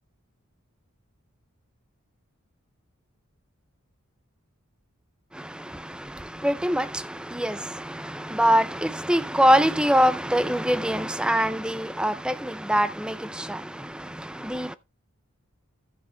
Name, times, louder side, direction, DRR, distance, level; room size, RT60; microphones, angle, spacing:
voice 1, 5.3-14.8, equal, 5° right, 0.5 m, -24 dB
15.0 x 5.9 x 3.4 m
head